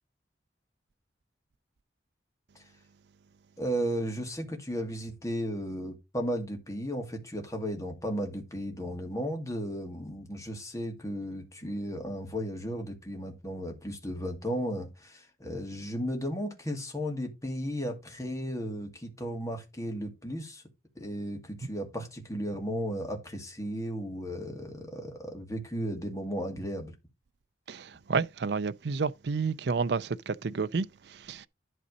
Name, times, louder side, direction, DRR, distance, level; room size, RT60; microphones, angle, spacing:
voice 1, 3.6-20.6 21.0-26.9, equal, 15° left, 2.3 m, -35 dB
voice 2, 27.7-31.5, right 5 dB, 65° right, 0.5 m, -30 dB
11.5 x 4.1 x 5.3 m
head